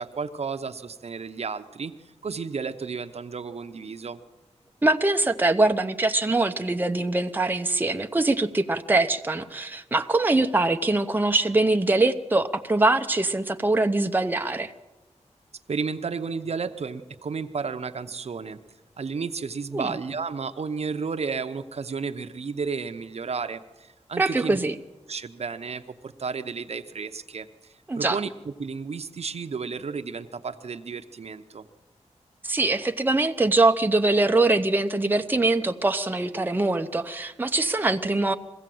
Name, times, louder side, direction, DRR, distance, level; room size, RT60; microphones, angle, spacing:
voice 1, 0.0-1.9 2.2-4.2 15.7-18.6 19.0-24.6 25.1-27.5 28.0-28.3 28.6-31.6, right 5 dB, 60° right, 9 dB, 0.9 m, -32 dB
voice 2, 4.8-14.7 19.7-19.9 24.2-24.7 27.9-28.2 32.4-38.3, right 2 dB, 15° right, 6 dB, 0.7 m, -23 dB
22.0 x 16.0 x 7.8 m, 1.2 s
wide cardioid pair, 90°, 12 cm